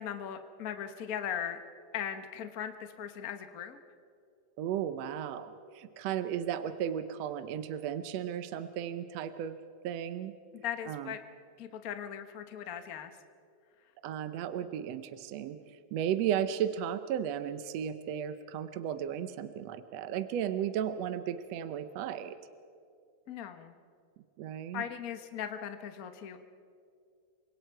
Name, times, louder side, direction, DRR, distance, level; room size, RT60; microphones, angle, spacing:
voice 1, 0.0-1.6 1.9-3.8 10.6-11.2 11.6-13.1 23.3-23.7 24.7-26.4, left 9 dB, 75° left, 8 dB, 0.8 m, -38 dB
voice 2, 4.6-9.6 9.8-10.3 10.9-11.1 14.0-15.6 15.9-22.4 24.4-24.8, right 9 dB, 70° right, 10 dB, 1.8 m, -34 dB
29.0 x 25.5 x 4.6 m, 2.4 s
omnidirectional pair, 3.4 m